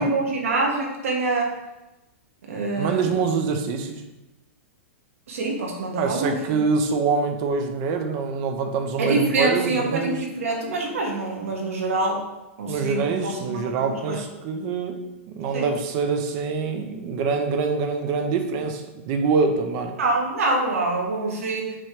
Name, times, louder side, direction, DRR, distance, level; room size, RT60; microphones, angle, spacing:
voice 1, 0.0-1.5 2.4-3.0 5.3-6.6 9.0-12.2 12.6-14.2 15.5-15.7 20.0-21.8, right 2 dB, 75° right, 0 dB, 1.4 m, -25 dB
voice 2, 2.8-4.0 6.0-10.2 12.7-20.0, right 4 dB, 25° right, 6 dB, 0.6 m, -25 dB
7.4 x 3.1 x 4.9 m, 1.0 s
supercardioid pair, 180°, 8 cm